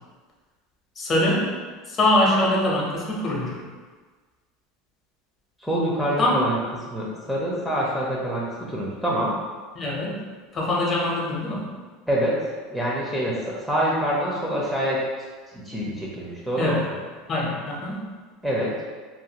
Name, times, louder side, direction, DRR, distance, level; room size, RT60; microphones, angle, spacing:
voice 1, 1.0-1.5 1.9-3.6 6.2-6.4 9.7-10.2 10.5-11.7 16.6-16.8 17.3-18.0, left 1 dB, 35° left, -3 dB, 0.7 m, -23 dB
voice 2, 5.6-6.6 6.9-9.4 12.1-12.4 12.7-15.0 15.5-17.0 18.4-18.7, equal, ahead, -6 dB, 0.5 m, -26 dB
2.5 x 2.5 x 2.8 m, 1.4 s
supercardioid pair, 120°, 0 cm